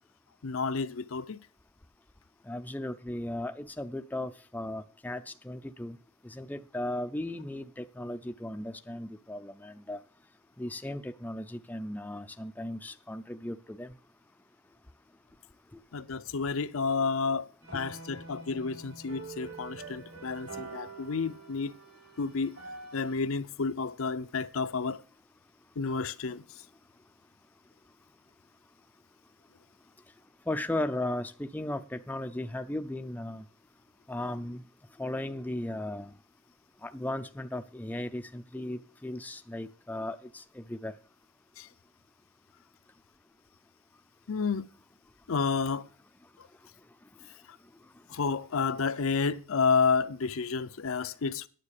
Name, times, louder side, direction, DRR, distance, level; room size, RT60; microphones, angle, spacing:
voice 1, 0.4-1.4 15.9-17.5 17.7-21.7 22.2-22.6 22.9-25.0 25.8-26.4 41.6-41.7 44.3-44.7 45.3-45.9 46.4-46.5 48.1-51.5, left 5 dB, 70° left, 0.6 m, -30 dB
voice 2, 2.5-6.0 6.2-10.0 10.6-13.9 30.5-33.4 34.1-34.6 35.0-36.1 36.8-40.9, left 1 dB, 10° left, 0.4 m, -36 dB
sound 1, 17.6-23.2, right 4 dB, 75° right, 6.2 m, -46 dB
9.7 x 7.5 x 6.5 m
head